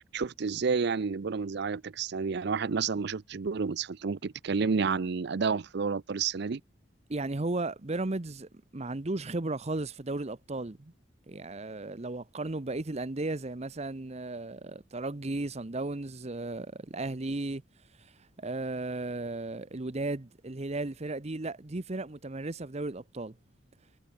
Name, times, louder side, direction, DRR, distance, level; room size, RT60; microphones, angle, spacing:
voice 1, 0.0-6.6, right 5 dB, 60° right, 0.5 m, -30 dB
voice 2, 7.1-10.9 11.3-17.6 18.0-18.1 18.4-23.4, right 2 dB, 35° right, 0.9 m, -35 dB
head